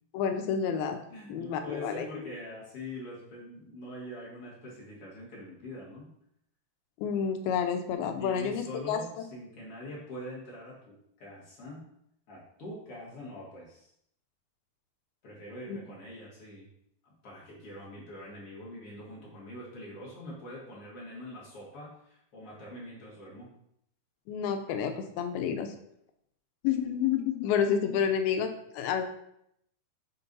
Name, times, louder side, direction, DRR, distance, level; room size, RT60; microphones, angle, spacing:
voice 1, 0.1-1.0 1.3-2.3 7.0-9.2 15.7-15.8 24.3-25.7 26.6-29.0, left 7 dB, 85° left, 6 dB, 2.5 m, -29 dB
voice 2, 1.1-6.1 8.2-11.9 12.3-13.9 15.2-16.7 17.2-23.5, left 1 dB, 50° left, -5 dB, 2.0 m, -44 dB
6.7 x 4.5 x 4.0 m, 0.74 s
omnidirectional pair, 4.3 m